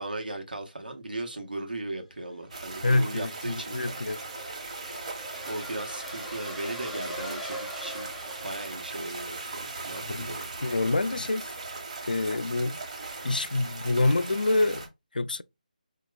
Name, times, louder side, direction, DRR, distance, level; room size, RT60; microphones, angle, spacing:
voice 1, 0.0-4.0 5.4-8.1 8.4-10.5, right 2 dB, 85° right, 1.0 m, -37 dB
sound 1, 2.3-9.4, equal, ahead, 0.4 m, -43 dB
sound 2, 2.5-14.9, right 3 dB, 50° right, 1.1 m, -39 dB
voice 2, 2.8-4.2 10.1-10.4 10.6-11.5 12.0-12.8 13.2-14.9 15.1-15.4, left 2 dB, 80° left, 0.3 m, -26 dB
4.6 x 2.8 x 2.2 m
figure-of-eight pair, 155°, 5 cm